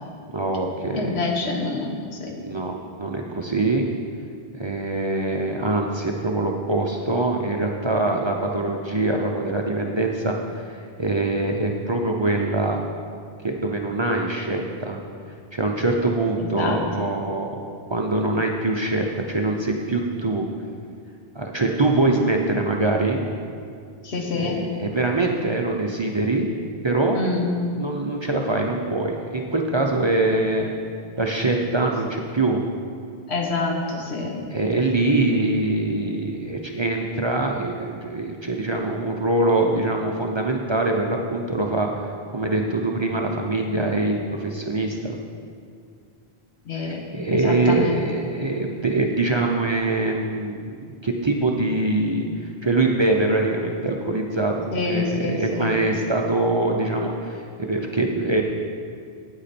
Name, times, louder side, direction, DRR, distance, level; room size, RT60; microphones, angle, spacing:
voice 1, 0.3-1.2 2.4-3.9 4.5-12.8 13.4-15.0 15.5-17.5 17.9-20.4 21.3-23.2 24.4-26.5 26.8-27.2 27.8-30.7 31.2-32.6 34.5-41.9 42.3-45.2 46.7-50.6 51.0-52.2 52.6-58.4, right 2 dB, 30° right, 1 dB, 0.6 m, -23 dB
voice 2, 1.0-2.4 16.4-16.8 24.0-24.6 27.1-27.5 33.3-34.4 46.6-47.0 47.3-48.0 54.7-55.8, left 3 dB, 90° left, 1 dB, 1.5 m, -27 dB
9.0 x 8.2 x 4.3 m, 2.3 s
omnidirectional pair, 1.1 m